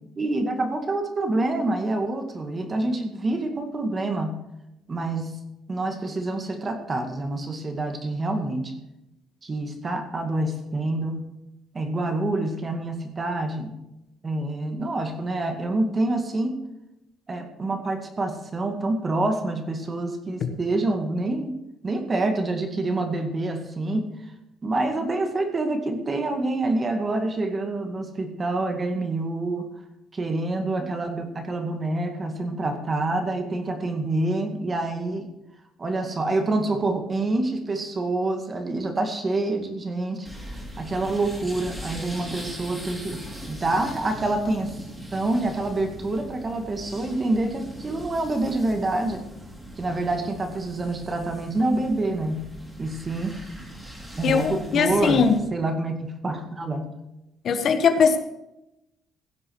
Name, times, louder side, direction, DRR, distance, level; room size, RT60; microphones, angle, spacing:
voice 1, 0.2-4.4 4.9-5.4 5.7-8.7 9.4-11.3 11.7-13.8 14.2-16.6 17.3-21.6 21.8-24.1 24.6-29.7 30.1-35.3 35.8-44.8 45.1-49.3 49.8-52.4 52.8-53.4 54.2-55.2 55.5-57.0, right 2 dB, 25° right, 5 dB, 2.1 m, -27 dB
sound 1, 40.2-55.4, equal, 10° right, 3.6 m, -40 dB
voice 2, 54.2-55.4 57.4-58.2, left 6 dB, 50° left, 8 dB, 1.3 m, -20 dB
16.0 x 7.7 x 6.3 m, 0.89 s
cardioid pair, 145°, 0 cm